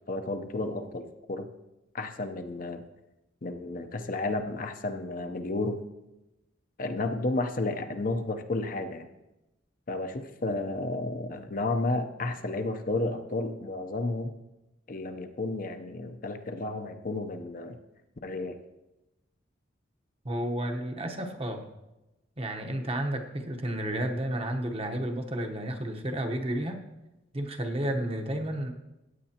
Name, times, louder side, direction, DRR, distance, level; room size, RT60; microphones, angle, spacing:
voice 1, 0.1-1.5 1.9-2.8 3.4-5.8 6.8-9.1 9.9-14.4 14.9-17.8 18.2-18.6, left 2 dB, 45° left, 7 dB, 0.7 m, -32 dB
voice 2, 20.2-21.6 22.4-26.8 27.3-28.7, right 1 dB, 30° right, 5 dB, 1.0 m, -31 dB
16.0 x 8.9 x 2.9 m, 0.97 s
head